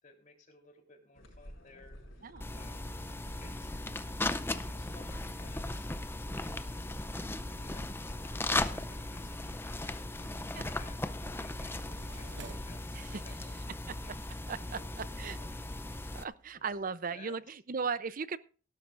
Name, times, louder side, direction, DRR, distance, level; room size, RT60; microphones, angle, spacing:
voice 1, 0.0-2.3 2.5-2.9 3.4-3.7 4.6-5.9 6.4-6.6 7.1-10.4 10.7-14.2 14.6-15.6 16.5-17.4, left 3 dB, 40° left, 2 dB, 3.5 m, -58 dB
sound 1, 1.1-12.8, equal, 85° left, 5.6 m, -51 dB
sound 2, 2.4-16.2, left 2 dB, 10° left, 0.5 m, -37 dB
sound 3, 11.7-16.9, right 4 dB, 60° right, 1.1 m, -57 dB
voice 2, 14.5-15.4 16.1-18.4, right 5 dB, 45° right, 16 dB, 0.6 m, -37 dB
18.0 x 11.5 x 2.5 m, 0.39 s
head